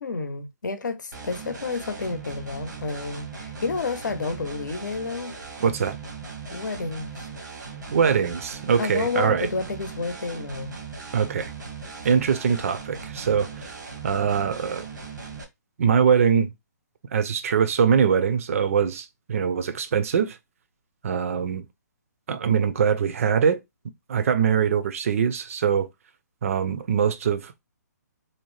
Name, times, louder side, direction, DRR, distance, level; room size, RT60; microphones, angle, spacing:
voice 1, 0.0-5.3 6.5-7.3 8.8-10.7, left 4 dB, 85° left, 0.7 m, -30 dB
sound 1, 1.1-15.4, right 4 dB, 80° right, 0.9 m, -39 dB
voice 2, 5.6-6.0 7.9-9.5 11.1-11.5 12.0-13.6 14.0-14.9 15.8-16.5 17.1-20.4 21.0-21.6 22.3-23.6 24.1-25.9 26.4-27.6, right 7 dB, 50° right, 0.4 m, -22 dB
2.7 x 2.0 x 3.1 m
hypercardioid pair, 160°, 10 cm